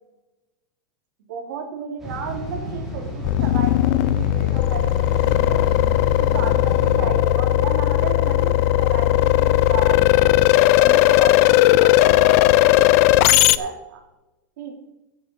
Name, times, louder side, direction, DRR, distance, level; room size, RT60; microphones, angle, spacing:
voice 1, 1.3-5.7 6.2-10.3 10.8-14.0 14.6-14.7, right 5 dB, 75° right, 2 dB, 3.1 m, -34 dB
sound 1, 2.0-7.1, equal, 5° right, 3.6 m, -31 dB
sound 2, 3.2-13.6, left 16 dB, 45° left, 0.4 m, -17 dB
15.5 x 7.9 x 4.5 m, 0.99 s
supercardioid pair, 170°, 11 cm